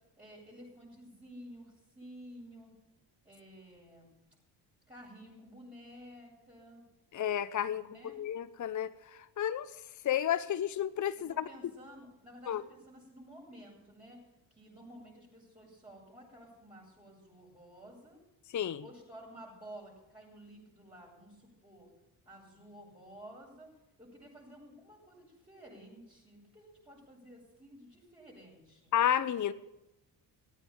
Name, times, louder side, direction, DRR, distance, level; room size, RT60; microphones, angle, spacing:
voice 1, 0.2-2.7 3.2-4.1 4.9-6.8 7.9-8.2 11.2-14.2 14.5-18.2 18.8-21.9 22.2-23.7 24.0-28.9, equal, 10° right, -8 dB, 7.7 m, -52 dB
voice 2, 7.1-9.7 10.0-11.4 12.5-12.6 18.5-18.8 28.9-29.5, left 10 dB, 40° left, 14 dB, 0.8 m, -31 dB
14.5 x 9.2 x 9.0 m, 0.91 s
supercardioid pair, 55°, 48 cm